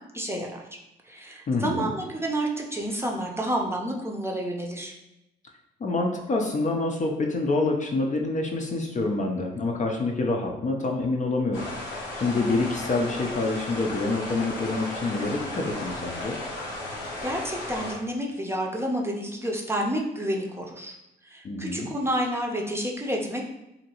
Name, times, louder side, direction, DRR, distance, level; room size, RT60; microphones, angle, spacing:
voice 1, 0.1-0.6 1.0-4.9 17.2-21.0 21.2-23.4, right 1 dB, 15° right, 0 dB, 0.6 m, -29 dB
voice 2, 1.5-1.9 5.8-16.4 21.4-21.9, left 3 dB, 40° left, 1 dB, 0.5 m, -27 dB
sound 1, 11.5-17.9, left 2 dB, 85° left, 0.8 m, -35 dB
2.8 x 2.6 x 2.8 m, 0.90 s
supercardioid pair, 60°, 19 cm